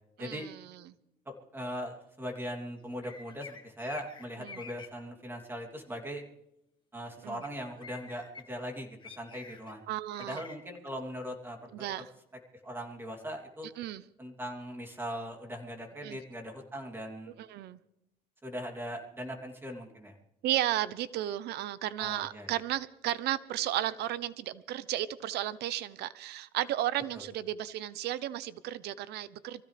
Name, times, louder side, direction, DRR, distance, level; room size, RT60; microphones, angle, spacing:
voice 1, 0.2-0.9 4.4-4.6 7.2-7.4 9.9-10.4 11.7-12.1 13.8-14.0 16.0-16.2 17.4-17.8 20.4-29.6, right 13 dB, 75° right, 16 dB, 0.8 m, -34 dB
voice 2, 1.3-6.2 6.9-9.8 10.2-11.9 12.6-13.7 14.2-17.3 18.4-20.1 22.0-22.5 27.1-27.3, equal, 15° right, 2 dB, 3.0 m, -40 dB
sound 1, 3.0-4.9 7.4-7.5 7.8-8.4 9.0-9.7 10.1-10.6, left 5 dB, 30° left, 2.2 m, -47 dB
24.0 x 15.5 x 3.4 m, 0.83 s
cardioid pair, 110°, 17 cm